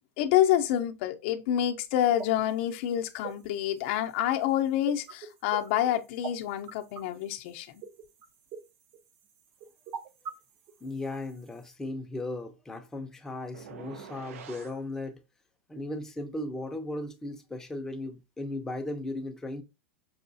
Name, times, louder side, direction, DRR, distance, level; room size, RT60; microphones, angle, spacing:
voice 1, 0.2-7.7, left 11 dB, 55° left, 0.6 m, -27 dB
sound 1, 2.0-11.7, right 7 dB, 35° right, 0.5 m, -44 dB
voice 2, 10.8-15.2 15.7-19.6, left 2 dB, 5° left, 0.5 m, -36 dB
sound 2, 13.5-14.8, right 7 dB, 85° right, 0.6 m, -45 dB
5.5 x 2.3 x 2.6 m
supercardioid pair, 145°, 7 cm